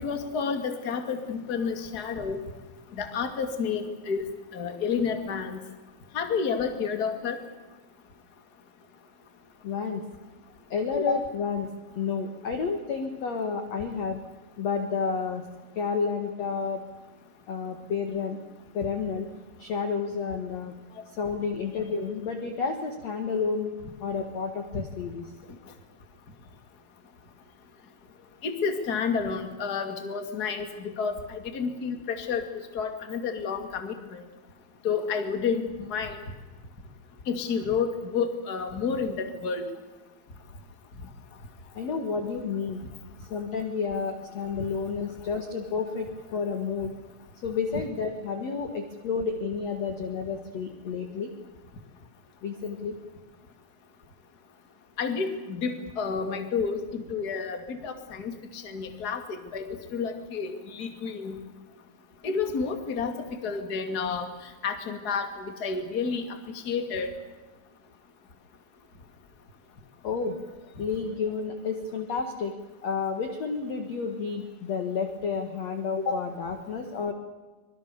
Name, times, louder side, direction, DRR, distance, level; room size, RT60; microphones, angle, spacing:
voice 1, 0.0-2.4 2.9-4.2 4.5-5.6 6.1-7.4 28.4-32.5 32.7-34.2 34.8-36.2 37.3-39.7 55.0-61.4 62.2-63.1 63.4-64.3 64.6-66.2 66.5-67.1, left 5 dB, 30° left, 6 dB, 2.1 m, -30 dB
voice 2, 9.6-10.0 10.7-11.7 12.0-14.2 14.6-15.4 15.8-16.8 17.5-18.4 18.7-19.3 19.6-20.7 21.1-23.7 24.0-25.3 41.7-42.8 43.3-46.9 47.4-51.3 52.4-53.0 70.0-70.4 70.8-72.6 72.8-77.1, left 5 dB, 50° left, 6 dB, 2.2 m, -30 dB
25.5 x 23.5 x 7.0 m, 1.2 s
omnidirectional pair, 5.1 m